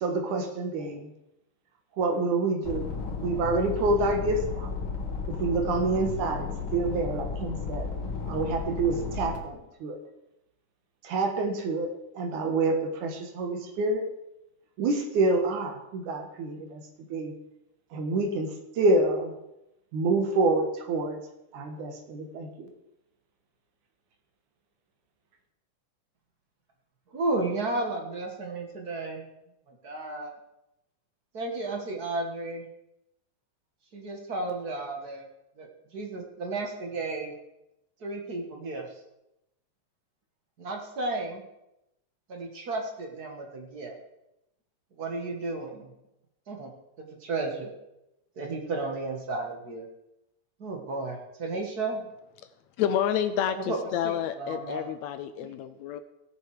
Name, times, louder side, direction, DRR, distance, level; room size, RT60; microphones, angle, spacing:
voice 1, 0.0-1.1 2.0-2.8 3.2-4.7 5.4-6.5 6.7-7.9 8.3-10.0 11.0-11.9 12.2-14.0 14.8-16.8 17.1-17.3 17.9-18.5 18.8-19.3 19.9-21.2 21.5-22.7, right 2 dB, 85° right, 4 dB, 2.9 m, -27 dB
sound 1, 2.6-9.4, left 5 dB, 45° left, 2.5 m, -34 dB
voice 2, 27.1-29.2 29.7-30.3 31.3-32.7 33.9-35.2 35.6-37.3 38.0-38.8 40.6-41.4 42.3-43.9 45.0-45.9 46.5-46.7 47.2-47.7 48.4-49.9 50.6-52.1 53.6-54.9 55.4-55.5, right 2 dB, 40° right, 2 dB, 1.6 m, -33 dB
voice 3, 52.8-56.0, left 9 dB, 80° left, 10 dB, 1.7 m, -29 dB
16.5 x 6.9 x 4.8 m, 0.88 s
omnidirectional pair, 3.4 m